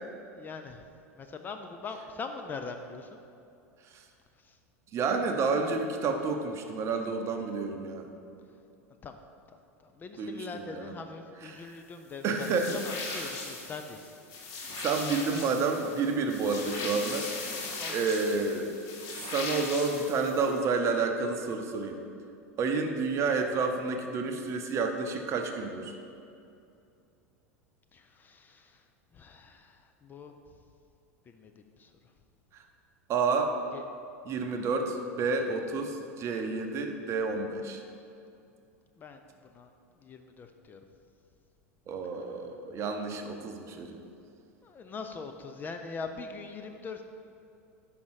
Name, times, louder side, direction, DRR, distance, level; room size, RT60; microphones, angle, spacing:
voice 1, 0.2-0.8 1.1-3.2 4.4-4.6 9.0-9.2 9.8-14.0 17.8-17.9 27.9-28.8 29.1-30.4 31.3-31.9 33.7-33.8 39.0-39.2 39.5-39.7 40.0-40.8 44.6-47.0, left 4 dB, 25° left, 6 dB, 0.4 m, -42 dB
voice 2, 4.9-8.1 10.2-10.9 11.4-11.8 12.2-13.4 14.7-17.3 17.9-18.7 19.3-22.0 22.6-25.9 32.5-32.6 33.1-33.5 34.2-37.8 41.9-44.0, right 4 dB, 35° right, 5 dB, 0.7 m, -30 dB
sound 1, 12.4-20.6, left 3 dB, 50° left, 1.2 m, -39 dB
5.3 x 5.1 x 4.8 m, 2.6 s
figure-of-eight pair, 85°, 8 cm